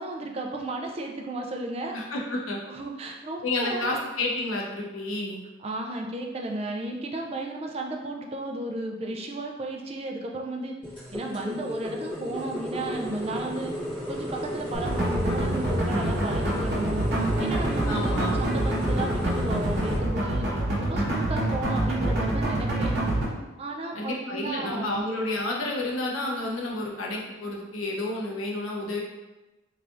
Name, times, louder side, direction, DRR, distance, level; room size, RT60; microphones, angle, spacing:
voice 1, 0.0-2.0 2.7-4.0 5.6-10.7 11.1-13.8 14.1-17.0 17.4-20.5 20.8-23.0 23.6-25.0, right 2 dB, 30° right, 1 dB, 0.3 m, -33 dB
voice 2, 1.9-2.6 3.4-5.4 17.9-18.4 23.9-29.0, left 2 dB, 85° left, -2 dB, 0.8 m, -30 dB
sound 1, 10.8-20.0, left 1 dB, 25° left, 1.4 m, -34 dB
sound 2, 14.7-23.2, right 1 dB, 55° right, 0.9 m, -26 dB
3.4 x 3.2 x 2.5 m, 1.1 s
head